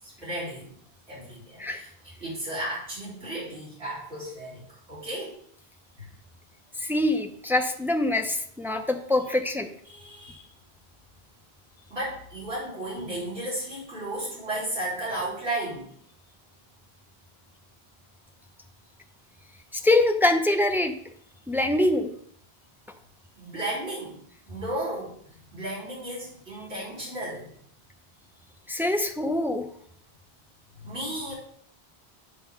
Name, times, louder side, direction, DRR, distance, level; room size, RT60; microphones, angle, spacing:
voice 1, 0.0-0.7 1.1-5.4 6.0-6.1 9.9-10.5 11.9-15.9 23.4-27.5 30.8-31.3, right 1 dB, 85° right, -10 dB, 4.1 m, -34 dB
voice 2, 6.8-9.7 19.7-20.9 21.5-22.1 28.7-29.7, left 2 dB, 5° right, 5 dB, 0.4 m, -24 dB
8.5 x 3.7 x 5.8 m, 0.64 s
omnidirectional pair, 1.1 m